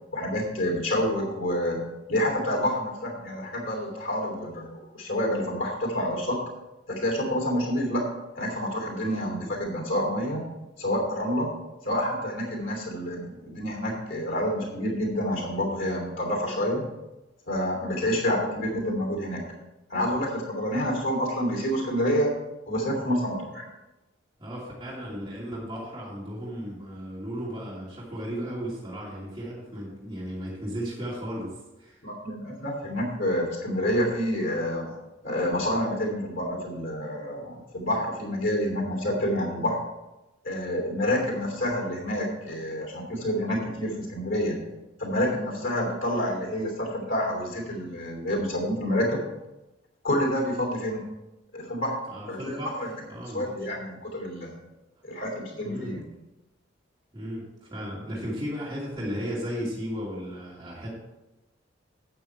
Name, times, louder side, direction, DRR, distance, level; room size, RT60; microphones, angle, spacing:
voice 1, 0.1-1.8 2.1-6.4 6.9-8.0 8.4-10.4 10.8-11.5 11.8-16.8 17.5-19.4 19.9-22.3 22.7-23.6 32.0-34.9 35.2-39.8 40.4-44.6 45.0-49.2 50.0-51.1 51.5-52.0 52.3-52.9 53.3-54.6 55.0-56.0, equal, 80° left, 0 dB, 3.0 m, -28 dB
voice 2, 24.4-32.0 52.1-52.7 53.1-53.4 55.5-56.0 57.1-60.9, equal, 25° right, -7 dB, 2.6 m, -35 dB
8.9 x 8.4 x 4.6 m, 1.0 s
head